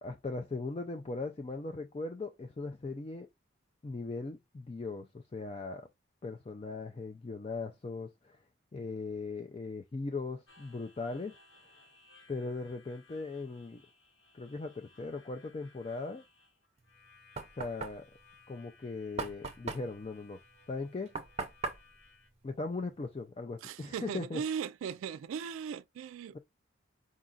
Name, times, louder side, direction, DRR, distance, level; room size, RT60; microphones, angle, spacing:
voice 1, 0.0-3.3 3.8-5.9 6.2-8.4 8.7-11.4 12.3-13.8 14.3-16.2 17.5-18.1 18.5-20.4 20.7-21.1 22.4-24.4, left 3 dB, 30° left, 0.3 m, -39 dB
Harmonica, 10.5-22.3, left 3 dB, 60° left, 1.3 m, -62 dB
Knock, 16.8-23.3, right 4 dB, 30° right, 0.6 m, -42 dB
voice 2, 23.6-26.4, right 7 dB, 85° right, 0.3 m, -38 dB
4.9 x 2.4 x 3.8 m
head